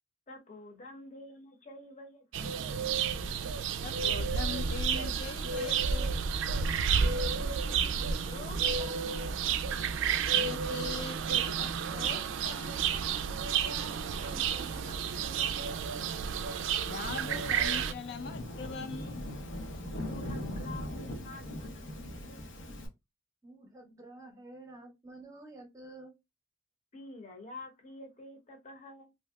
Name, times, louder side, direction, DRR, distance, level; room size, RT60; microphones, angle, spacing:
voice 1, 0.3-2.6 7.0-9.3 13.6-15.9 19.9-22.6 26.9-29.1, left 1 dB, 35° left, 0.8 m, -49 dB
sound 1, 2.3-17.9, right 6 dB, 85° right, 0.3 m, -31 dB
voice 2, 3.8-6.2 10.3-12.8 16.8-19.3, left 5 dB, 60° left, 0.3 m, -42 dB
Thunderstorm / Rain, 15.2-22.9, left 1 dB, 85° left, 0.9 m, -41 dB
voice 3, 23.4-26.1, right 2 dB, 15° right, 0.7 m, -50 dB
3.3 x 2.6 x 2.2 m
head